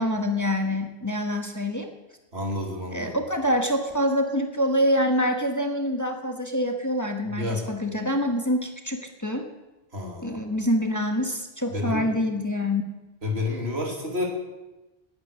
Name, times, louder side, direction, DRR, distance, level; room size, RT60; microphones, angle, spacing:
voice 1, 0.0-1.9 2.9-9.5 10.2-12.8, equal, 15° left, 3 dB, 1.5 m, -26 dB
voice 2, 2.3-3.2 7.3-7.7 9.9-10.4 11.7-12.1 13.2-14.2, left 2 dB, 75° right, 0 dB, 3.4 m, -29 dB
19.0 x 9.9 x 6.7 m, 1.1 s
omnidirectional pair, 1.1 m